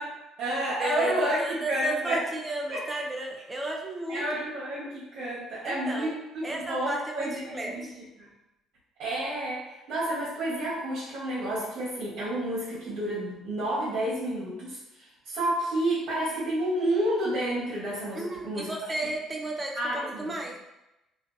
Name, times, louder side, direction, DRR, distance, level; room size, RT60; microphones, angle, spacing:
voice 1, 0.0-2.2 2.7-2.8 4.1-6.2 6.5-7.9 8.2-8.3 9.0-18.7 19.7-20.3, right 1 dB, 65° right, -8 dB, 0.9 m, -30 dB
voice 2, 0.8-4.4 5.6-6.1 6.4-7.9 18.1-20.6, right 2 dB, 20° right, 0 dB, 0.4 m, -34 dB
2.5 x 2.3 x 2.5 m, 0.94 s
cardioid pair, 100°, 0 cm